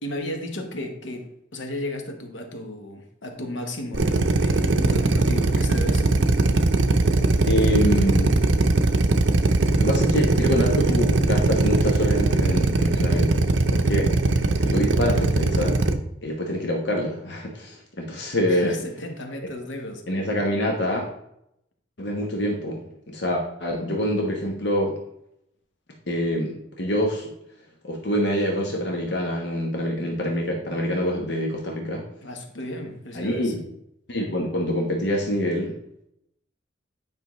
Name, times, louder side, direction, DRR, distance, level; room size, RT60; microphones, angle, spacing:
voice 1, 0.0-6.1 18.5-20.0 32.2-33.5, left 1 dB, 85° left, 4 dB, 1.2 m, -34 dB
Drill, 3.9-15.9, right 2 dB, 75° right, 0.7 m, -20 dB
voice 2, 7.5-8.5 9.8-14.1 14.6-15.8 16.2-18.8 20.1-21.0 22.0-24.9 26.1-27.3 27.8-32.0 33.1-33.5 34.1-35.8, equal, 65° left, 0 dB, 1.1 m, -25 dB
9.5 x 5.4 x 3.1 m, 0.76 s
head